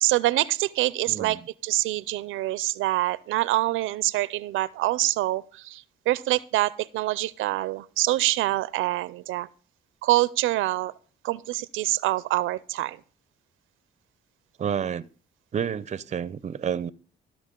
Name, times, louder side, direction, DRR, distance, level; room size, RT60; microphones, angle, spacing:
voice 1, 0.0-9.5 10.0-10.9 11.2-13.0, right 16 dB, 85° right, 0.5 m, -25 dB
voice 2, 1.1-1.4 14.6-15.1 15.5-16.9, right 8 dB, 35° right, 0.5 m, -29 dB
13.5 x 6.0 x 3.7 m
cardioid pair, 90°, 20 cm